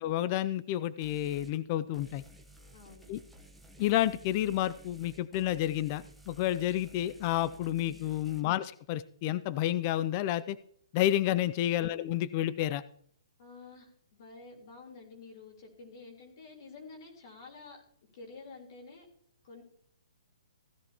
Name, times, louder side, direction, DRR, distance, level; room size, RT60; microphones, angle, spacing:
voice 1, 0.0-2.2 3.1-3.2 3.8-10.6 10.9-12.8, left 13 dB, 25° left, 17 dB, 0.4 m, -30 dB
sound 1, 1.0-1.5 1.9-8.4, equal, ahead, 1.0 m, -55 dB
voice 2, 2.5-3.1 7.8-8.1 13.4-17.8 18.1-19.1 19.4-19.6, left 4 dB, 40° left, 1 dB, 3.7 m, -50 dB
16.0 x 11.0 x 2.9 m, 0.63 s
hypercardioid pair, 170°, 3 cm